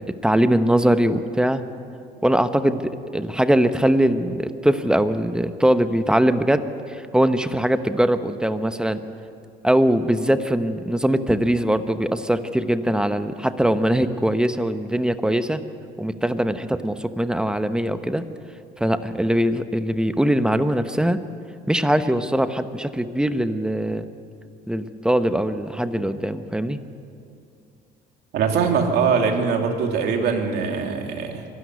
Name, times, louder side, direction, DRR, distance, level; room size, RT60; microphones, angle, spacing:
voice 1, 0.0-1.6 2.2-9.0 9.6-15.6 16.0-18.2 18.8-21.2 21.7-24.0 24.7-26.8, right 1 dB, 5° right, 10 dB, 1.0 m, -21 dB
voice 2, 28.3-31.5, right 5 dB, 75° right, 3 dB, 2.8 m, -22 dB
24.0 x 12.5 x 9.5 m, 2.5 s
cardioid pair, 110°, 17 cm